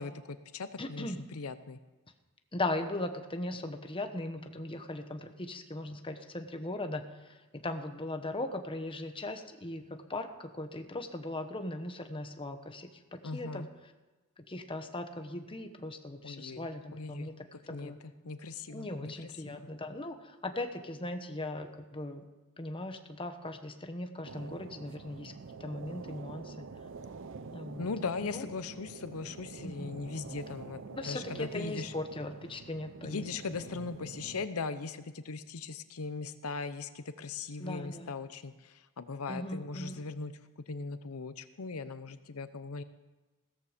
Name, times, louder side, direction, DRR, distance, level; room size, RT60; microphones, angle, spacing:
voice 1, 0.0-1.8 13.2-13.7 16.2-17.3 17.7-19.7 27.8-31.9 33.0-40.3 40.7-42.8, left 4 dB, 90° left, 12 dB, 0.8 m, -39 dB
voice 2, 0.8-1.2 2.5-13.7 14.4-17.4 17.7-18.0 18.7-22.2 22.6-25.3 25.6-26.7 27.5-27.9 28.2-28.4 29.6-29.9 31.0-33.2 33.7-33.8 37.6-38.1 39.3-40.0, left 2 dB, 25° left, 6 dB, 1.2 m, -39 dB
sound 1, 24.2-34.5, right 4 dB, 60° right, 0.6 m, -47 dB
16.5 x 13.5 x 5.1 m, 1.2 s
head